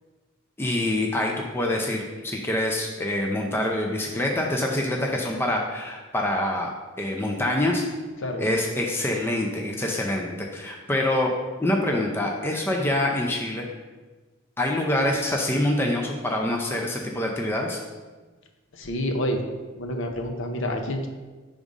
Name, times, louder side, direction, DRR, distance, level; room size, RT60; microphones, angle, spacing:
voice 1, 0.6-6.7 7.0-7.8 8.4-11.3 11.6-13.7 14.6-17.8, left 1 dB, 10° left, 0 dB, 0.4 m, -25 dB
voice 2, 8.2-8.6 18.7-19.4 19.8-21.1, left 1 dB, 60° left, 3 dB, 0.6 m, -28 dB
5.1 x 3.6 x 5.1 m, 1.3 s
head